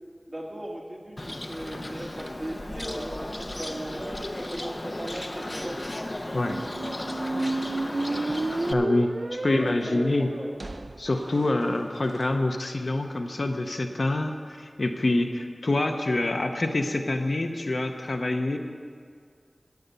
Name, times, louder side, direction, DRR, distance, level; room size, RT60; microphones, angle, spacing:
voice 1, 0.3-5.8 9.2-10.5, right 1 dB, 35° right, -1 dB, 1.8 m, -37 dB
Bird, 1.2-8.7, left 1 dB, 35° left, 0.7 m, -35 dB
sound 1, 6.3-12.2, right 2 dB, 55° right, 0.3 m, -32 dB
voice 2, 8.7-10.3 11.0-18.6, left 2 dB, 65° left, 4 dB, 0.8 m, -26 dB
10.5 x 6.9 x 9.0 m, 2.1 s
wide cardioid pair, 65°, 0 cm